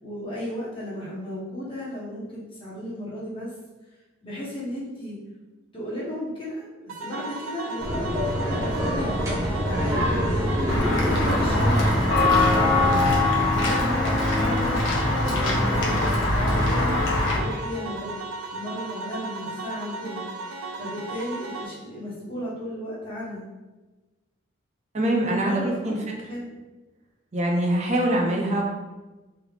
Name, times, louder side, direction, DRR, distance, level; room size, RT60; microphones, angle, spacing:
voice 1, 0.0-3.5 4.2-5.2 5.7-8.1 8.5-10.6 11.1-12.8 13.3-17.0 17.3-18.2 18.5-20.2 20.8-23.4 25.4-26.0 26.3-26.5, equal, 25° left, -7 dB, 0.8 m, -34 dB
sound 1, 6.9-21.7, right 3 dB, 85° right, 0.4 m, -36 dB
sound 2, 7.8-13.2, equal, 15° right, 0.9 m, -26 dB
Walk footsteps / Bell, 10.7-17.4, left 2 dB, 75° left, 0.7 m, -22 dB
voice 2, 24.9-26.0 27.3-28.6, right 1 dB, 35° right, 0 dB, 0.5 m, -23 dB
3.3 x 3.3 x 2.3 m, 1.2 s
head